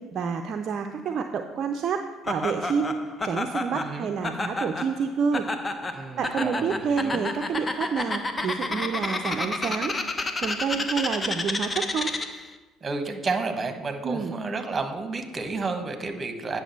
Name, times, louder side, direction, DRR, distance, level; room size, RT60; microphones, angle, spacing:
voice 1, 0.1-2.9 3.2-5.5 6.2-9.9 10.4-12.1 14.0-14.3, right 6 dB, 50° right, 6 dB, 0.5 m, -28 dB
Laughter, 2.3-12.5, left 2 dB, 25° left, 0.8 m, -31 dB
voice 2, 3.7-4.1 5.9-7.2 12.8-16.6, right 3 dB, 30° right, 7 dB, 1.1 m, -31 dB
9.0 x 6.1 x 4.4 m, 1.3 s
figure-of-eight pair, 55°, 0 cm